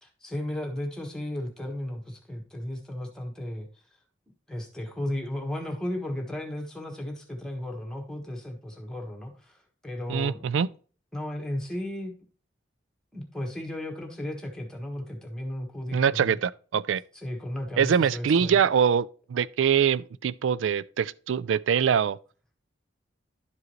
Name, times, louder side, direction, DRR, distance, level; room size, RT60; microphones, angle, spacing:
voice 1, 0.0-3.7 4.5-9.6 9.8-10.5 11.1-12.1 13.1-16.4 17.1-18.6, left 1 dB, 5° left, 1.4 m, -34 dB
voice 2, 10.1-10.7 15.9-17.0 17.8-22.2, right 7 dB, 85° right, 0.4 m, -24 dB
11.5 x 4.8 x 3.1 m
head